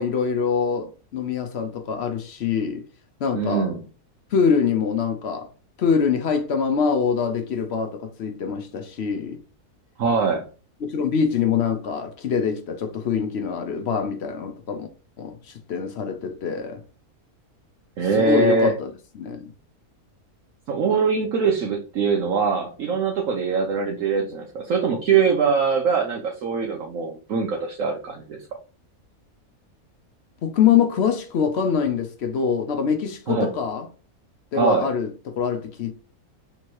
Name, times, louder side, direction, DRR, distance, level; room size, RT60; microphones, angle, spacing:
voice 1, 0.0-2.8 3.2-3.7 4.3-5.5 5.8-9.4 10.8-14.9 15.2-16.8 18.2-18.9 19.2-19.5 30.4-33.9 34.5-35.9, left 6 dB, 60° left, 0.7 m, -24 dB
voice 2, 3.3-3.8 10.0-10.4 18.0-18.7 20.7-28.4 33.3-33.5 34.6-34.9, right 5 dB, 65° right, 1.1 m, -22 dB
3.5 x 3.0 x 4.5 m
omnidirectional pair, 1.6 m